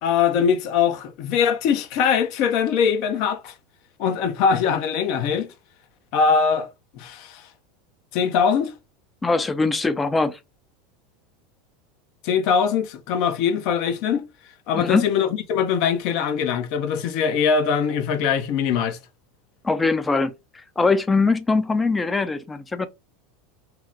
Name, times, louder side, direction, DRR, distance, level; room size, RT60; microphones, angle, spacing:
voice 1, 0.0-3.5 4.0-5.5 6.1-6.7 6.9-7.4 8.1-8.7 12.2-14.3 14.7-19.0, left 6 dB, 55° left, 0.7 m, -22 dB
voice 2, 9.2-10.4 14.7-15.0 19.6-22.9, left 3 dB, 15° left, 0.5 m, -22 dB
2.9 x 2.1 x 3.7 m
hypercardioid pair, 85°, 0 cm